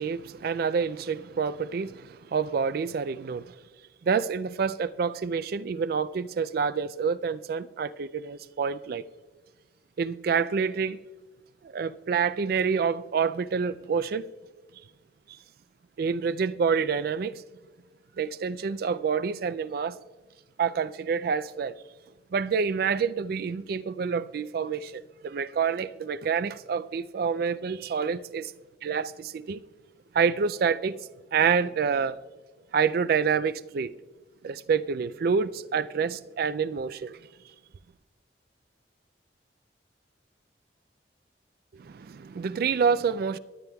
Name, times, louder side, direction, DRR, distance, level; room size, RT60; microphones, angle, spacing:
voice 1, 0.0-3.5 4.0-9.0 10.0-11.0 11.7-14.3 16.0-17.4 18.2-20.0 20.6-21.8 22.3-28.5 28.8-29.6 30.1-31.0 31.3-32.2 32.7-33.9 34.4-37.2 41.7-43.4, right 6 dB, 55° right, 0.3 m, -27 dB
23.0 x 9.2 x 2.3 m
head